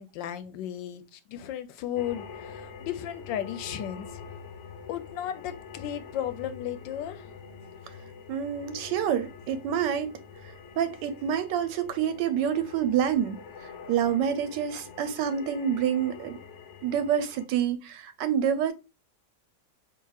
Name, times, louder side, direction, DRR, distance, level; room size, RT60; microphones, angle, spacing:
voice 1, 0.0-4.1 4.9-7.2, left 10 dB, 85° left, 1.3 m, -35 dB
sound 1, 1.9-17.5, left 5 dB, 65° left, 0.7 m, -45 dB
voice 2, 8.3-10.1 10.4-16.4 16.8-18.7, right 8 dB, 80° right, 1.2 m, -28 dB
4.7 x 3.0 x 2.3 m
omnidirectional pair, 2.0 m